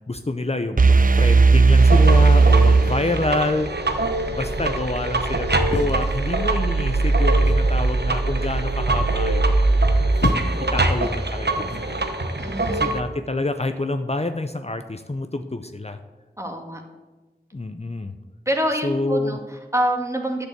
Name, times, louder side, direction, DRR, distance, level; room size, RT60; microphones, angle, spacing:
voice 1, 0.1-3.7 4.3-9.7 10.7-12.0 12.7-16.0 17.5-18.1 18.8-19.4, left 2 dB, 40° left, 8 dB, 0.6 m, -27 dB
sound 1, 0.8-3.7, right 4 dB, 55° right, 0.5 m, -15 dB
sound 2, 1.8-13.0, right 2 dB, 75° right, 1.1 m, -22 dB
sound 3, 5.7-6.7 7.5-7.9 9.8-10.7 11.7-12.0, left 3 dB, 90° left, 0.9 m, -30 dB
voice 2, 12.4-12.9 16.4-16.8 18.5-20.5, right 1 dB, 15° right, 3 dB, 1.9 m, -26 dB
10.5 x 6.8 x 8.2 m, 1.2 s
wide cardioid pair, 45°, 17 cm